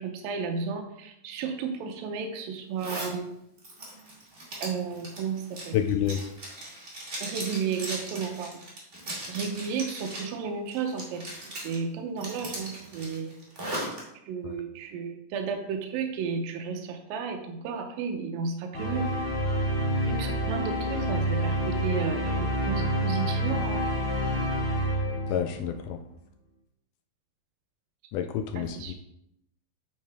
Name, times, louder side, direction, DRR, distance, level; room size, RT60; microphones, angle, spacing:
voice 1, 0.0-3.4 4.6-5.8 7.2-8.6 9.3-13.4 14.3-19.1 20.0-23.8 28.6-28.9, right 5 dB, 90° right, 5 dB, 2.6 m, -33 dB
Zipper (clothing), 2.8-3.1 3.6-10.3 10.7-11.8 12.2-14.0, right 1 dB, 25° right, 2.1 m, -38 dB
voice 2, 5.7-6.2 14.4-14.5 25.3-26.0 28.1-28.9, left 9 dB, 80° left, 7 dB, 1.9 m, -28 dB
sound 1, 18.7-25.8, equal, 45° left, 0.9 m, -28 dB
9.2 x 6.5 x 3.4 m, 0.79 s
omnidirectional pair, 4.0 m